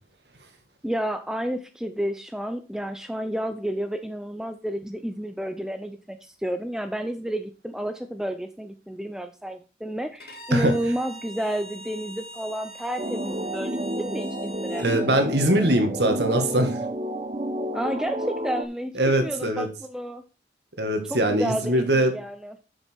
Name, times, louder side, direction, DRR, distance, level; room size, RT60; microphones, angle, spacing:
voice 1, 0.8-14.9 17.7-20.2 21.1-22.6, equal, 5° right, 8 dB, 0.5 m, -31 dB
Bowed string instrument, 10.2-15.1, right 1 dB, 60° left, 2.1 m, -43 dB
sound 1, 13.0-18.7, right 1 dB, 35° right, 0.7 m, -30 dB
voice 2, 14.8-16.8 19.0-19.7 20.8-22.1, right 1 dB, 75° right, 6 dB, 1.8 m, -22 dB
7.3 x 6.7 x 4.5 m, 0.32 s
head